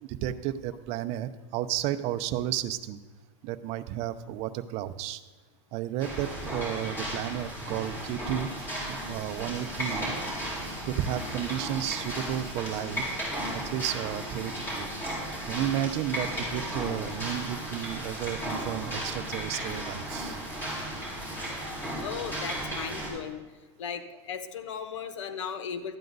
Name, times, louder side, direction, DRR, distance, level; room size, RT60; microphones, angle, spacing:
voice 1, 0.0-3.0 3.4-5.2 5.7-8.5 8.9-10.1 10.8-13.1 13.5-14.9 15.4-20.4, right 12 dB, 45° right, 10 dB, 0.6 m, -32 dB
sound 1, 6.0-23.1, equal, 15° left, 4.0 m, -35 dB
voice 2, 22.0-23.4 23.8-26.0, left 7 dB, 85° left, 9 dB, 1.0 m, -36 dB
12.5 x 9.0 x 4.0 m, 1.3 s
supercardioid pair, 135°, 15 cm